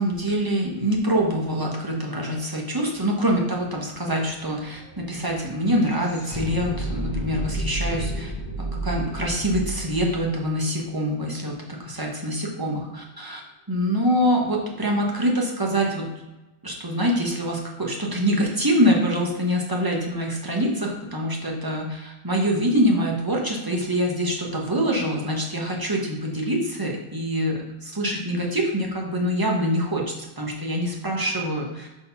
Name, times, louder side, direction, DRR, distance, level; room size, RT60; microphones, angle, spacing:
voice 1, 0.0-8.3 8.6-13.4 13.7-16.1 16.6-30.0 30.4-31.9, equal, 20° right, -1 dB, 1.3 m, -25 dB
sound 1, 2.9-3.0 3.2-11.5, right 1 dB, 25° left, 1.1 m, -33 dB
5.3 x 4.4 x 5.6 m, 1.1 s
omnidirectional pair, 1.1 m